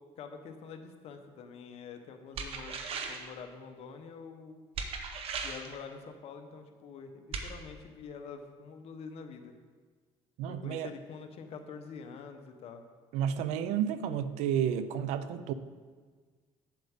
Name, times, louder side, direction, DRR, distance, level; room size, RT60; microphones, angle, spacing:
voice 1, 0.2-2.8 3.1-4.6 5.4-9.5 10.5-12.8, left 5 dB, 60° left, 6 dB, 0.9 m, -46 dB
sound 1, 2.4-3.3 4.7-5.7 7.3-7.5, right 5 dB, 55° right, 0.9 m, -37 dB
voice 2, 10.4-10.9 13.1-15.5, right 9 dB, 80° right, 13 dB, 0.5 m, -31 dB
8.3 x 7.6 x 3.6 m, 1.5 s
cardioid pair, 105°, 12 cm